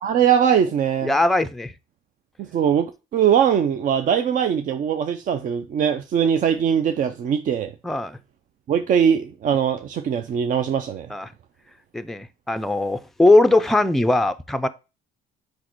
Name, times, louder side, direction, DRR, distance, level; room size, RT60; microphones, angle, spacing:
voice 1, 0.0-1.1 2.4-7.7 8.7-11.1, right 8 dB, 50° right, 0.5 m, -21 dB
voice 2, 1.0-1.7 7.8-8.2 11.1-11.3 11.9-14.7, left 2 dB, ahead, 0.4 m, -20 dB
6.2 x 5.2 x 3.0 m
cardioid pair, 110°, 17 cm